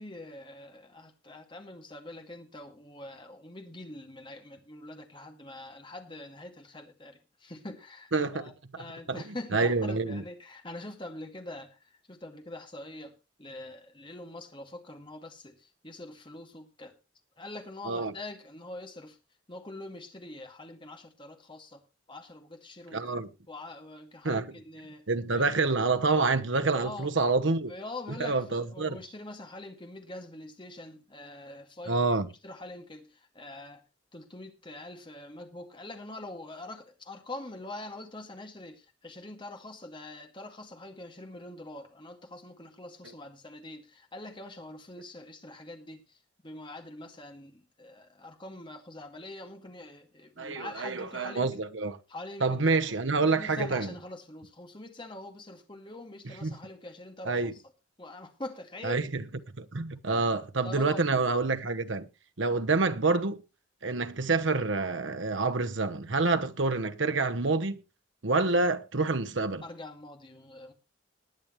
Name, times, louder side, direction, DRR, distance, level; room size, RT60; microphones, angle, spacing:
voice 1, 0.0-13.1 13.4-16.9 17.4-19.2 19.5-21.8 22.1-23.0 23.5-25.0 25.3-25.6 26.6-27.1 27.7-32.1 32.4-33.8 34.1-46.2 46.4-51.6 52.1-52.6 53.2-57.6 58.0-59.0 60.1-61.3 69.6-70.7, left 2 dB, 25° left, 2.1 m, -44 dB
voice 2, 8.1-8.5 9.1-9.2 9.5-10.2 17.8-18.1 22.9-23.3 24.2-24.5 25.1-27.7 28.2-29.0 31.9-32.3 50.4-52.0 52.4-53.9 56.4-56.5 57.2-57.5 58.8-59.2 59.6-62.1 62.4-63.4 63.8-67.8 68.2-69.6, right 3 dB, 70° right, 1.1 m, -27 dB
20.0 x 8.9 x 3.2 m
head